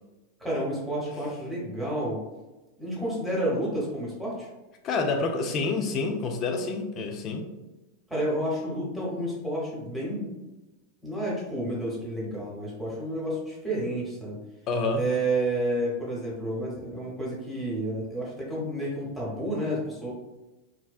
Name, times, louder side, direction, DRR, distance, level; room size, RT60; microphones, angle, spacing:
voice 1, 0.4-2.2 2.8-4.5 8.1-10.3 11.0-14.4 14.9-20.1, right 1 dB, ahead, -7 dB, 1.0 m, -30 dB
voice 2, 4.8-7.4 14.7-15.0, left 3 dB, 40° left, 4 dB, 0.4 m, -28 dB
2.5 x 2.1 x 2.3 m, 1.0 s
hypercardioid pair, 95°, 0 cm